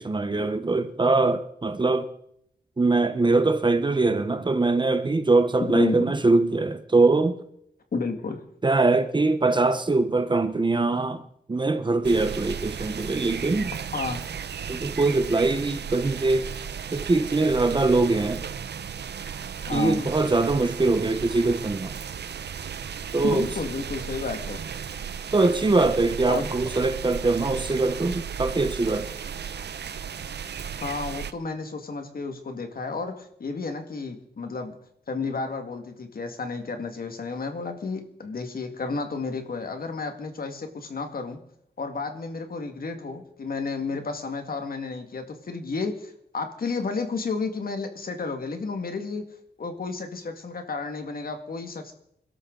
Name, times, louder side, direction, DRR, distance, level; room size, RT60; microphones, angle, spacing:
voice 1, 0.0-2.1 2.8-7.4 8.6-13.7 14.7-16.5 16.9-18.5 19.7-21.9 23.1-23.5 25.3-29.1, right 3 dB, 25° right, 1.0 m, -22 dB
voice 2, 5.8-6.1 7.9-8.4 13.9-14.2 19.7-20.1 23.2-24.6 26.3-26.5 30.8-34.7 35.1-41.4 41.8-49.3 49.6-51.9, left 4 dB, 60° left, 2.1 m, -31 dB
sound 1, 12.0-31.3, right 7 dB, 85° right, 0.8 m, -35 dB
28.5 x 12.5 x 4.0 m
wide cardioid pair, 145°, 17 cm